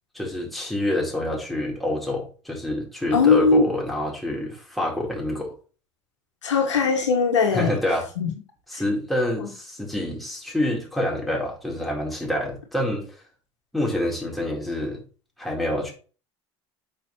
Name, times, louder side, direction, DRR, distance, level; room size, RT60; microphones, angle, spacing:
voice 1, 0.1-5.5 7.5-8.1 8.7-13.1 13.7-15.0 15.4-15.9, left 1 dB, ahead, -3 dB, 4.3 m, -27 dB
voice 2, 3.1-3.7 6.4-7.8 8.2-8.3 9.4-9.5, left 4 dB, 80° left, 2 dB, 1.8 m, -20 dB
8.8 x 6.7 x 3.2 m, 0.37 s
hypercardioid pair, 70°, 15 cm